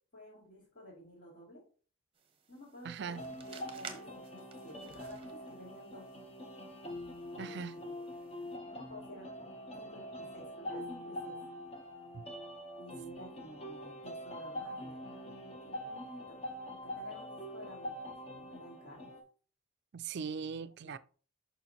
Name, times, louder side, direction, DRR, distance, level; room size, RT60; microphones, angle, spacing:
voice 1, 0.1-1.6 2.5-6.1 7.3-8.0 8.4-9.5 9.7-11.4 12.8-16.4 16.7-19.1 20.6-21.0, left 1 dB, 50° left, 3.1 m, -52 dB
sound 1, 2.1-8.6, right 6 dB, 25° right, 0.8 m, -54 dB
voice 2, 2.8-3.2 7.4-7.8 12.1-12.2 19.9-21.0, right 6 dB, 50° right, 0.4 m, -40 dB
sound 2, 3.0-19.2, equal, 30° left, 0.8 m, -44 dB
7.0 x 5.7 x 2.9 m
head